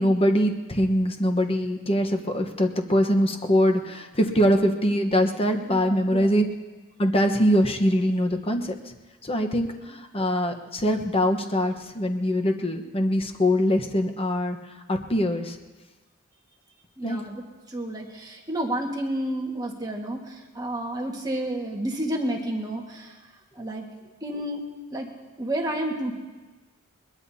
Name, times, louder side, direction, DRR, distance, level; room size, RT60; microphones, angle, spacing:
voice 1, 0.0-6.5 7.0-8.7 9.2-14.6 14.9-15.6 17.0-17.2, equal, 25° left, 4 dB, 1.1 m, -23 dB
voice 2, 5.6-6.3 17.0-23.2 23.5-23.9 24.2-25.1 25.4-26.1, right 1 dB, 20° right, -1 dB, 1.7 m, -31 dB
21.5 x 21.0 x 2.8 m, 1.2 s
head